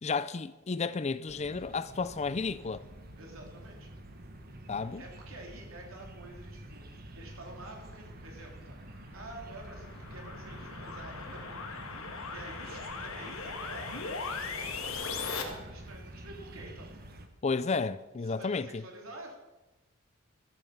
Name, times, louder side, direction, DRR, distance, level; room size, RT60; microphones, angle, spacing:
voice 1, 0.0-2.9 4.7-5.0 17.4-18.8, left 4 dB, 30° left, 0.4 m, -32 dB
sound 1, 1.3-17.3, right 1 dB, 45° right, 1.3 m, -48 dB
voice 2, 3.2-3.9 4.7-6.9 7.1-8.8 9.1-16.9 18.2-19.4, right 2 dB, 80° right, 3.3 m, -49 dB
sound 2, 8.9-15.4, left 4 dB, 80° left, 1.8 m, -39 dB
13.0 x 8.8 x 7.2 m
head